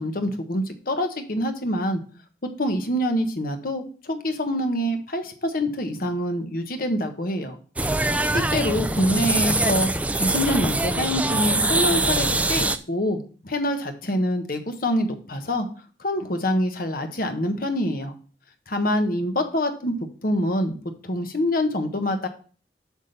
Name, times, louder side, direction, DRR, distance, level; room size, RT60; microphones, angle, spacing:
voice 1, 0.0-2.0 2.6-7.6 8.3-9.9 10.2-15.7 16.0-18.1 18.7-19.9 20.2-20.8 21.0-22.3, left 1 dB, 55° left, 6 dB, 1.1 m, -25 dB
sound 1, 7.8-12.8, right 2 dB, 10° right, 0.4 m, -23 dB
8.1 x 3.7 x 6.6 m, 0.40 s
head